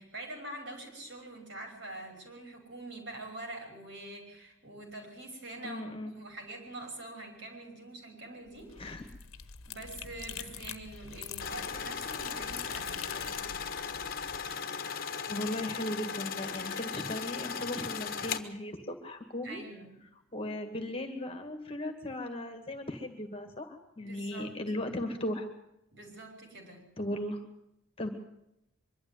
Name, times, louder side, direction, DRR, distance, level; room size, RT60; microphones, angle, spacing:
voice 1, 0.0-8.7 9.6-13.6 19.4-19.9 24.0-24.5 25.9-26.8, right 2 dB, 60° right, 2 dB, 5.9 m, -45 dB
voice 2, 5.6-6.1 8.8-9.0 15.3-19.6 20.3-25.5 27.0-27.4 28.0-28.1, left 1 dB, 25° left, 5 dB, 2.0 m, -37 dB
sound 1, 8.5-14.6, left 8 dB, 90° left, 1.1 m, -45 dB
sound 2, 11.4-18.4, left 6 dB, 45° left, 1.3 m, -37 dB
23.5 x 12.5 x 9.6 m, 0.82 s
head